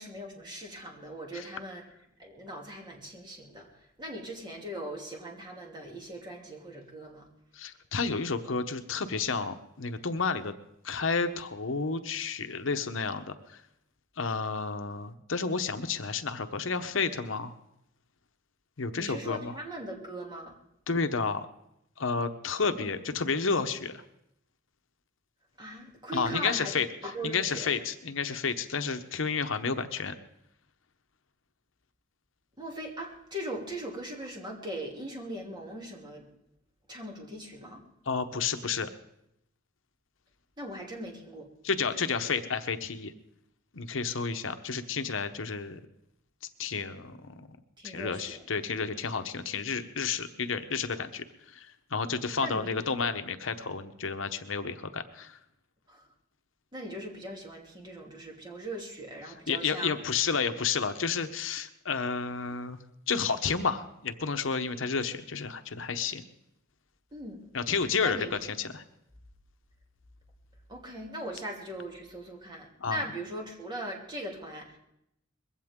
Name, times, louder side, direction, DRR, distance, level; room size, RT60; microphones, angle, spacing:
voice 1, 0.0-1.8 2.2-3.7 4.0-7.3 18.9-20.5 22.6-22.9 25.6-26.7 27.0-27.7 32.6-36.3 36.9-37.8 40.6-41.5 47.8-48.4 52.4-52.8 55.9-56.0 56.7-59.9 67.1-67.4 68.0-68.3 70.7-74.8, right 1 dB, 20° right, 0 dB, 2.8 m, -40 dB
voice 2, 7.5-10.5 10.8-13.6 14.2-17.5 18.8-19.5 20.9-21.5 22.0-24.0 26.1-26.9 27.2-30.1 38.1-38.9 41.6-43.1 43.7-45.8 46.6-47.3 47.8-55.4 59.5-62.8 63.1-66.2 67.5-68.8 72.8-73.0, left 5 dB, 70° left, 9 dB, 0.9 m, -31 dB
21.5 x 16.0 x 3.7 m, 0.79 s
head